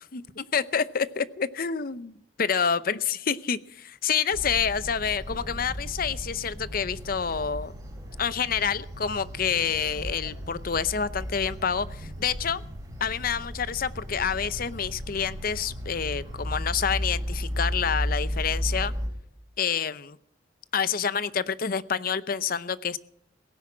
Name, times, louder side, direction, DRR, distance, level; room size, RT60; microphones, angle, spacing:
voice 1, 0.1-7.7 8.2-12.6 13.0-18.9 19.6-20.2 20.7-23.0, left 7 dB, 50° left, 16 dB, 0.7 m, -28 dB
sound 1, 4.3-19.1, equal, 20° right, 3.5 m, -34 dB
17.5 x 10.0 x 7.3 m, 0.71 s
head